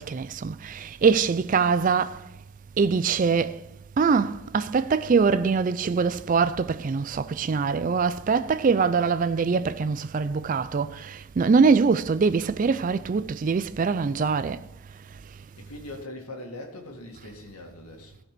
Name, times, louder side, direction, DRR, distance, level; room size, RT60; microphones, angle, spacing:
voice 1, 0.0-2.2 2.8-3.6 4.0-14.6, right 5 dB, 35° right, 0.3 m, -23 dB
voice 2, 15.6-18.2, left 1 dB, 85° left, 2.0 m, -41 dB
14.0 x 5.1 x 6.7 m
head